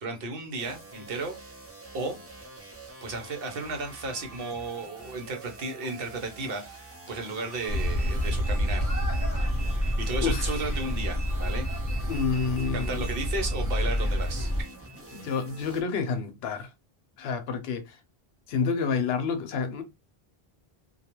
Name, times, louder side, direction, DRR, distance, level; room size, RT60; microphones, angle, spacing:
voice 1, 0.0-1.4 1.9-2.2 3.0-8.9 9.7-12.0 12.7-14.5, right 3 dB, 65° right, 0.9 m, -34 dB
sound 1, 0.6-15.8, right 2 dB, 15° right, 0.5 m, -46 dB
sound 2, 4.1-6.6 7.5-15.8, right 6 dB, 35° right, 0.9 m, -47 dB
sound 3, 7.7-14.6, equal, 20° left, 0.9 m, -28 dB
voice 2, 10.2-10.6 12.1-13.0 15.1-16.7 17.2-18.0 18.5-19.8, left 5 dB, 80° left, 0.8 m, -29 dB
2.3 x 2.3 x 2.9 m
omnidirectional pair, 1.0 m